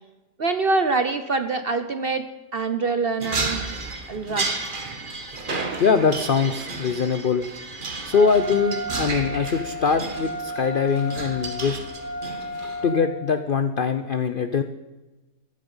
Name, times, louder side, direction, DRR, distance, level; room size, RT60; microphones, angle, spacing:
voice 1, 0.4-2.2 2.5-3.6 4.1-4.7, right 3 dB, 50° right, 9 dB, 0.7 m, -25 dB
sound 1, 3.2-12.9, right 3 dB, 30° right, 1.4 m, -32 dB
voice 2, 5.8-7.5 8.0-11.8 12.8-14.6, left 5 dB, 65° left, 10 dB, 0.5 m, -22 dB
Wind instrument woodwind instrument, 8.1-13.4, equal, 70° right, 3.5 m, -33 dB
15.0 x 11.5 x 5.5 m, 1.1 s
omnidirectional pair, 1.8 m